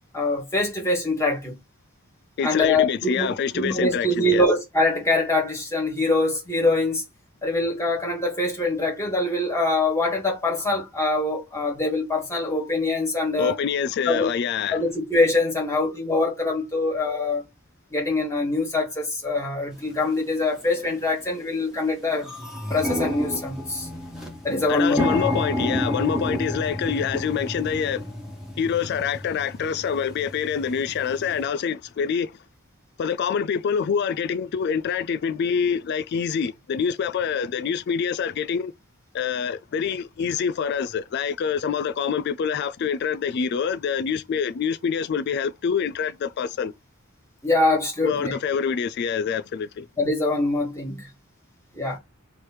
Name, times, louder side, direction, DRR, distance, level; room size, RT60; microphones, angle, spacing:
voice 1, 0.1-1.6 2.4-7.0 7.4-13.6 14.1-14.3 14.7-17.4 17.9-22.3 22.7-23.9 24.4-25.0 47.4-48.4 50.0-51.1 51.7-52.0, left 2 dB, 15° left, 1.8 m, -24 dB
voice 2, 2.4-4.5 13.4-14.8 24.7-28.0 28.6-32.3 33.0-38.7 39.1-46.7 48.0-49.9, left 7 dB, 50° left, 0.3 m, -26 dB
sound 1, 19.9-20.0 20.8-21.0 21.4-21.5 21.8-31.5, left 1 dB, 5° right, 1.3 m, -30 dB
3.3 x 3.1 x 4.4 m
head